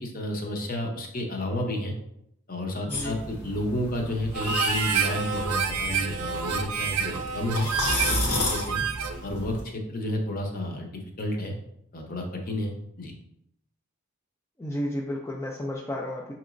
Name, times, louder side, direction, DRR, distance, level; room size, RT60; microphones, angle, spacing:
voice 1, 0.0-1.9 2.5-7.7 8.0-8.8 9.2-11.5 11.9-13.1, left 1 dB, 40° left, 1 dB, 0.7 m, -31 dB
sound 1, 2.9-9.6, left 1 dB, 80° left, 1.3 m, -32 dB
Harmonica, 4.3-9.3, right 7 dB, 80° right, 0.4 m, -29 dB
voice 2, 14.6-16.3, left 1 dB, 10° left, -2 dB, 0.3 m, -32 dB
6.0 x 2.9 x 2.5 m, 0.78 s
head